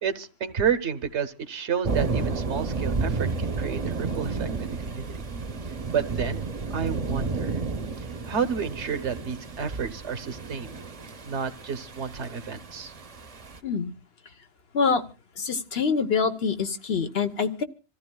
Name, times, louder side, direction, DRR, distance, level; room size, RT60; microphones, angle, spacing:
voice 1, 0.0-5.1 5.9-7.5 8.0-10.7 11.2-12.9, right 7 dB, 80° right, 12 dB, 1.3 m, -30 dB
sound 1, 1.8-13.6, right 4 dB, 35° right, 0.9 m, -32 dB
voice 2, 15.4-17.6, left 5 dB, 60° left, 7 dB, 1.3 m, -25 dB
26.5 x 14.5 x 2.3 m, 0.32 s
omnidirectional pair, 1.2 m